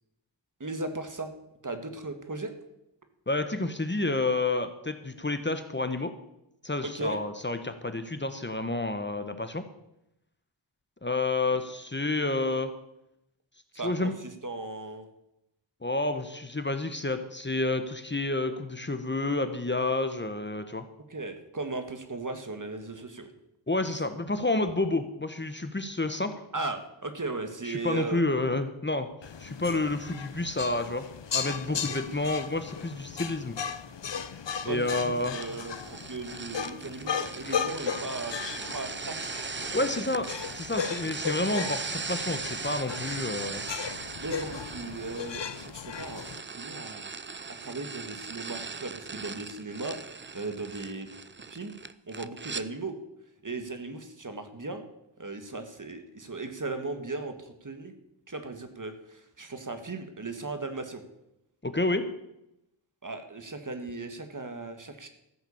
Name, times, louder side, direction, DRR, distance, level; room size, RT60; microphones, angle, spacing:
voice 1, 0.6-1.3 1.6-2.5 6.8-7.2 13.8-15.1 21.1-23.3 26.5-28.2 31.9-32.0 34.7-39.4 39.7-40.1 44.2-47.0 47.6-50.0 50.3-51.1 51.5-51.8 52.1-53.0 53.4-54.8 55.2-57.9 58.3-61.0 63.0-65.1, right 3 dB, 40° right, 7 dB, 1.8 m, -37 dB
voice 2, 3.3-6.1 6.6-9.6 11.0-12.7 13.8-14.1 15.8-20.9 23.7-26.3 27.7-29.1 29.4-31.0 31.3-33.6 34.6-35.4 37.4-37.5 39.7-40.3 40.5-43.6 61.6-62.1, left 2 dB, 25° left, 9 dB, 1.2 m, -29 dB
sound 1, 29.2-46.4, left 7 dB, 70° left, 0.8 m, -36 dB
sound 2, 35.2-52.6, right 4 dB, 25° right, 0.6 m, -39 dB
14.0 x 8.1 x 7.2 m, 0.85 s
wide cardioid pair, 55°, 45 cm